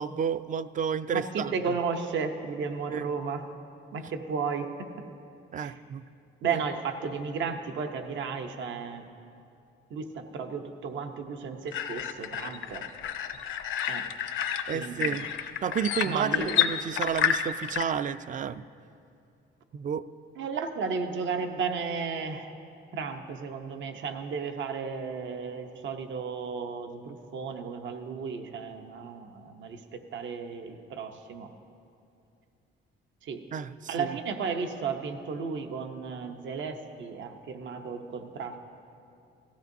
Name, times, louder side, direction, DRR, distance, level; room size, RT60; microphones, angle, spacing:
voice 1, 0.0-1.5 2.9-3.0 5.5-6.0 14.7-15.3 15.6-18.6 19.7-20.1 33.5-33.7 34.0-34.1, right 7 dB, 40° right, 14 dB, 0.4 m, -31 dB
voice 2, 1.1-3.5 3.9-4.9 5.6-5.8 6.4-9.1 9.9-12.9 13.9-14.1 14.7-15.1 16.0-16.6 20.4-22.5 22.9-31.5 33.2-33.4 33.9-38.6, right 5 dB, 70° right, 6 dB, 0.9 m, -34 dB
sound 1, 11.7-17.8, left 9 dB, 80° left, 0.6 m, -30 dB
17.0 x 14.5 x 2.7 m, 2.5 s
cardioid pair, 90°, 20 cm